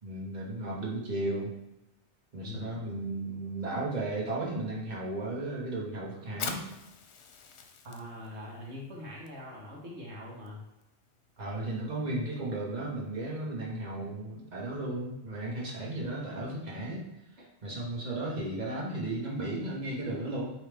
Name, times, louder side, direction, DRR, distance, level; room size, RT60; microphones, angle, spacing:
voice 1, 0.0-1.5 2.3-6.6 11.4-17.0 17.6-20.5, right 2 dB, 40° right, -4 dB, 1.5 m, -34 dB
voice 2, 2.4-2.9 7.8-10.6 13.9-14.1, left 1 dB, 70° right, -3 dB, 1.5 m, -43 dB
Fire, 6.3-13.5, left 5 dB, 70° left, 0.9 m, -46 dB
8.5 x 3.2 x 3.4 m, 0.89 s
omnidirectional pair, 1.2 m